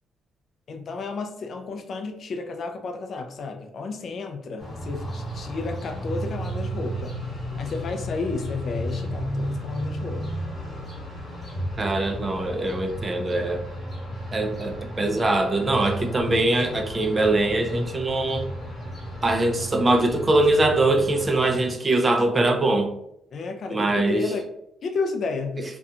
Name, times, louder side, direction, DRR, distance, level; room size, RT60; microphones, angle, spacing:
voice 1, 0.7-7.2 7.6-10.2 23.3-24.5 24.8-25.6, left 4 dB, 50° left, 5 dB, 0.3 m, -32 dB
sound 1, 4.6-21.7, equal, 25° left, 1.2 m, -33 dB
voice 2, 11.8-13.6 14.3-18.5 19.2-22.9 23.7-24.3, right 2 dB, 25° right, 4 dB, 0.4 m, -22 dB
2.4 x 2.2 x 2.7 m, 0.76 s
cardioid pair, 110°, 0 cm